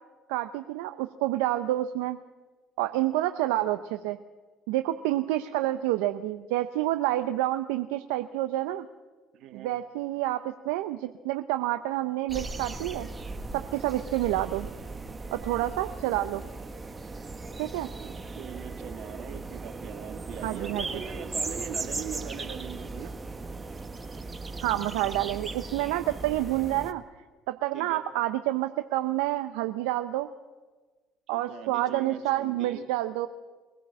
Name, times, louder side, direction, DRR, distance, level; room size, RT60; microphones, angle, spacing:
voice 1, 0.3-2.2 2.8-4.2 4.7-8.8 9.5-13.1 13.5-14.7 15.3-16.4 17.6-17.9 20.4-20.8 24.6-27.0 27.5-30.3 31.3-33.3, right 15 dB, 85° right, 9 dB, 0.7 m, -28 dB
voice 2, 9.3-9.7 17.9-23.1 27.7-28.0 31.3-32.9, right 8 dB, 65° right, 5 dB, 2.6 m, -41 dB
sound 1, 12.3-26.9, right 3 dB, 25° right, 1.7 m, -38 dB
23.0 x 16.5 x 7.6 m, 1.3 s
hypercardioid pair, 65°, 0 cm